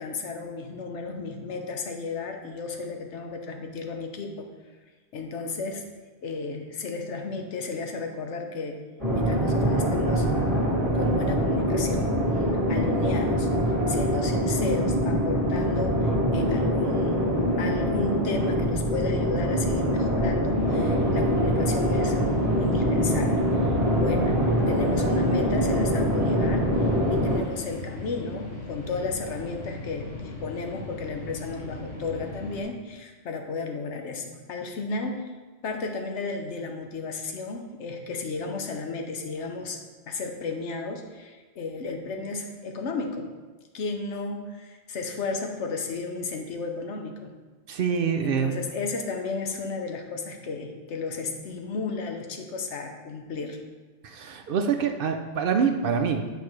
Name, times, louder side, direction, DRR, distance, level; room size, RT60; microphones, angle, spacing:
voice 1, 0.0-4.5 5.1-5.8 6.2-8.8 9.1-10.3 10.9-17.2 17.6-22.2 22.6-26.7 27.1-35.3 35.6-39.8 40.1-43.3 43.7-47.3 48.2-53.6, left 4 dB, 80° left, 4 dB, 1.1 m, -33 dB
sound 1, 9.0-27.4, equal, 30° right, 1.8 m, -24 dB
sound 2, 20.5-32.6, left 2 dB, 60° left, 1.5 m, -39 dB
voice 2, 47.7-48.5 54.0-56.3, right 6 dB, 60° right, 5 dB, 0.7 m, -25 dB
8.5 x 5.2 x 3.2 m, 1.3 s
omnidirectional pair, 1.2 m